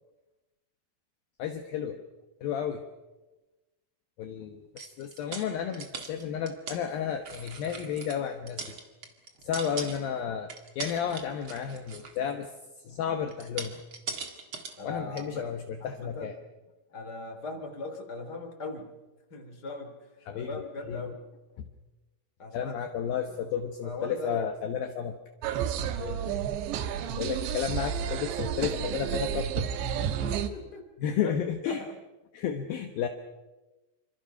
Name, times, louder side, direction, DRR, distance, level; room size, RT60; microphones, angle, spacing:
voice 1, 1.4-2.0 2.4-2.8 4.2-8.8 9.4-12.5 12.8-13.8 14.8-16.3 20.3-20.5 20.9-21.0 21.6-21.7 22.5-25.2 27.2-29.7 31.0-31.8 32.3-33.1, left 8 dB, 70° left, 5 dB, 2.7 m, -32 dB
sound 1, 4.8-6.8 7.1-8.2 8.5-10.2 10.5-12.3 13.3-14.8 15.2-15.3, right 5 dB, 40° right, 2.2 m, -40 dB
voice 2, 14.8-15.5 15.8-16.3 16.9-18.9 19.3-20.0 20.3-21.2 22.4-22.7 23.1-23.5 23.8-24.4 26.0-26.3 29.9-31.4 31.6-31.9, left 3 dB, 25° left, 4 dB, 3.4 m, -39 dB
sound 2, 25.4-30.5, right 9 dB, 85° right, 3.5 m, -31 dB
27.5 x 26.0 x 5.8 m, 1.1 s
omnidirectional pair, 4.9 m